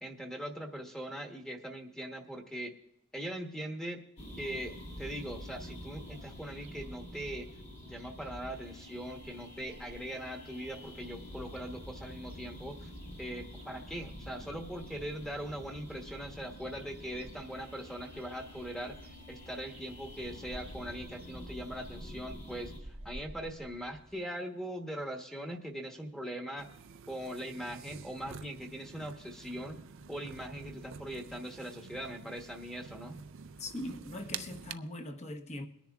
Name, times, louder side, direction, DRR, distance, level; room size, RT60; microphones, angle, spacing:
voice 1, 0.0-2.7 3.1-4.0 4.4-7.5 7.8-12.9 13.2-26.7 27.1-29.8 30.1-33.2, right 1 dB, ahead, 1.1 m, -41 dB
sound 1, 4.2-22.8, equal, 50° left, 2.4 m, -48 dB
sound 2, 6.0-24.2, right 1 dB, 25° right, 0.8 m, -54 dB
sound 3, 26.6-34.7, right 6 dB, 60° right, 0.5 m, -48 dB
voice 2, 33.6-35.6, left 1 dB, 30° left, 1.0 m, -41 dB
23.0 x 10.0 x 2.4 m
head